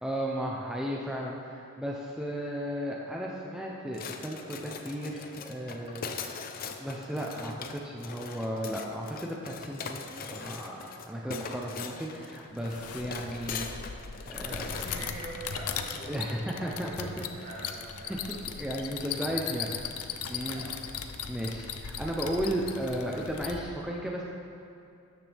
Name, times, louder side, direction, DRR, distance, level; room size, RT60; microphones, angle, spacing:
voice 1, 0.0-6.4 6.8-10.0 10.3-10.8 11.0-13.9 14.3-14.7 16.1-17.6 18.1-18.2 18.6-19.7 20.3-20.6 21.3-24.2, equal, 5° right, -3 dB, 0.7 m, -34 dB
sound 1, 3.9-15.1, left 5 dB, 40° left, 0.6 m, -41 dB
sound 2, 12.6-23.6, left 7 dB, 85° left, 0.7 m, -38 dB
voice 2, 14.1-18.1 20.4-20.8, right 1 dB, 45° right, -6 dB, 2.7 m, -44 dB
13.5 x 9.2 x 3.5 m, 2.7 s
head